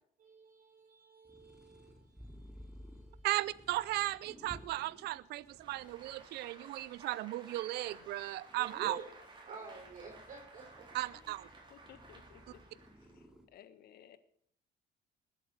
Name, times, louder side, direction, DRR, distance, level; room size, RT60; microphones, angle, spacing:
voice 1, 0.2-3.3 8.6-9.0 9.4-11.0, right 5 dB, 50° right, 0 dB, 4.8 m, -50 dB
sound 1, 1.2-13.4, equal, 5° right, 2.7 m, -57 dB
voice 2, 3.2-9.0 10.9-11.5, right 17 dB, 80° right, 19 dB, 0.6 m, -36 dB
Applause, 5.5-13.2, right 3 dB, 30° right, 3.9 m, -56 dB
voice 3, 11.7-14.2, left 10 dB, 65° left, 12 dB, 1.5 m, -59 dB
19.5 x 8.5 x 6.6 m, 0.65 s
cardioid pair, 110°, 17 cm